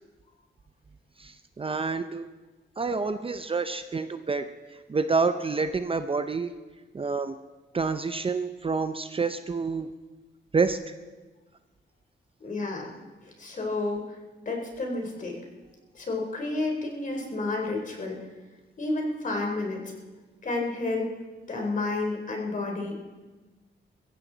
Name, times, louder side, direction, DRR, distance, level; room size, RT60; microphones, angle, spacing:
voice 1, 1.2-2.3 2.8-4.5 4.7-6.5 6.9-7.3 7.7-9.9 10.5-10.8, right 4 dB, 30° right, 9 dB, 0.6 m, -28 dB
voice 2, 12.4-14.2 14.4-15.4 15.9-18.2 18.8-19.8 20.4-21.1 21.5-22.9, left 2 dB, 45° left, 1 dB, 3.5 m, -30 dB
22.0 x 15.0 x 4.0 m, 1.2 s
wide cardioid pair, 125°, 19 cm